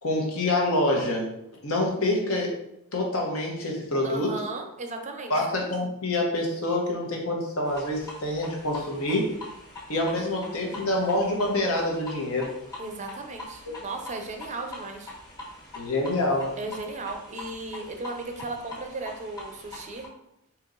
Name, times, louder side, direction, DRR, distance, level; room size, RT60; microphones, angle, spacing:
voice 1, 0.0-1.3 1.6-2.6 2.9-4.3 5.3-9.3 9.9-12.5 15.7-16.5, left 1 dB, 65° left, -1 dB, 1.2 m, -26 dB
voice 2, 4.0-5.3 10.1-10.2 12.8-15.1 16.6-20.1, right 2 dB, 30° right, 4 dB, 0.5 m, -36 dB
sound 1, 7.6-20.1, left 1 dB, 15° left, 1.0 m, -43 dB
4.6 x 2.9 x 3.8 m, 0.83 s
head